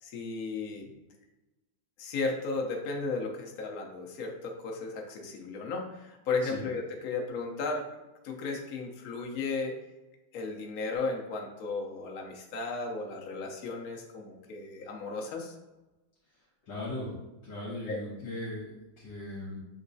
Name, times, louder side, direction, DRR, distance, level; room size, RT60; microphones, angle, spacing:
voice 1, 0.0-0.9 2.0-7.9 8.2-9.8 10.3-15.5 17.9-18.0, left 3 dB, 80° left, 0 dB, 0.8 m, -35 dB
voice 2, 16.6-17.1 17.4-19.6, left 1 dB, 60° left, -5 dB, 1.7 m, -38 dB
6.8 x 3.0 x 2.6 m, 1.0 s
omnidirectional pair, 2.4 m